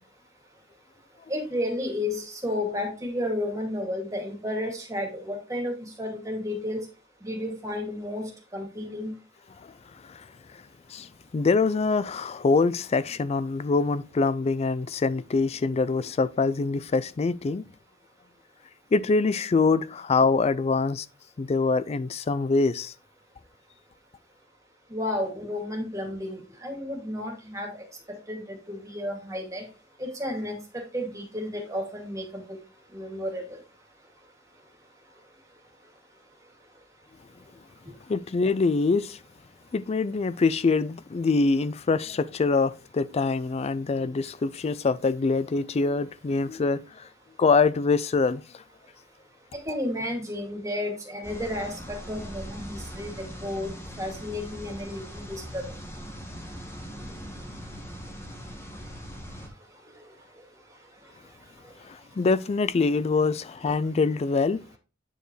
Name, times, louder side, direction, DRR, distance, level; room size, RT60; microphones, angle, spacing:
voice 1, 1.3-6.9 7.2-9.1 24.9-29.6 30.0-32.6 32.9-33.6 49.5-55.8 60.0-60.1, left 1 dB, 15° right, 2.2 m, -32 dB
voice 2, 10.9-17.6 18.9-21.1 21.4-22.9 38.1-39.2 39.7-47.1 47.4-48.4 61.8-64.6, left 4 dB, 35° left, 0.3 m, -24 dB
sound 1, 51.2-59.5, equal, 15° left, 1.3 m, -40 dB
8.9 x 5.0 x 3.1 m
head